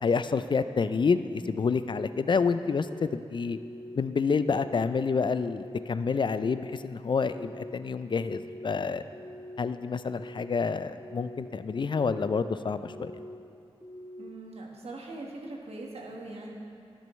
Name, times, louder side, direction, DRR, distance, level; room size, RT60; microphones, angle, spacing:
voice 1, 0.0-3.6 4.0-9.0 9.6-13.1, left 5 dB, 50° left, 12 dB, 0.3 m, -28 dB
sound 1, 1.6-2.1 2.5-3.0 3.5-4.0 4.4-4.9 5.4-5.9 6.3-6.8 7.2-7.7 8.2-8.7 9.1-9.6 10.0-10.5 11.0-11.5 11.9-12.4 12.9-13.4 13.8-14.3, left 1 dB, 30° left, 1.7 m, -44 dB
voice 2, 14.2-16.5, right 2 dB, 80° right, -1 dB, 1.4 m, -41 dB
16.5 x 6.2 x 3.1 m, 2.5 s
wide cardioid pair, 65°, 10 cm